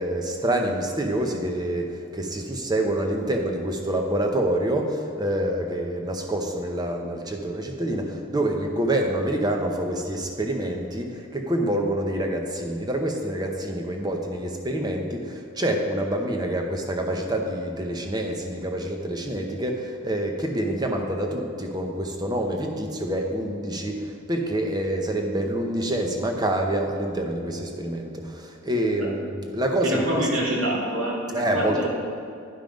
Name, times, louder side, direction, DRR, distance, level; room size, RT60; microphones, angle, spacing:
voice 1, 0.0-29.2 29.5-30.0 31.3-31.8, right 1 dB, 20° right, 2 dB, 0.7 m, -27 dB
voice 2, 29.8-31.9, right 1 dB, 85° right, -3 dB, 2.1 m, -26 dB
10.0 x 5.6 x 5.1 m, 2.5 s
head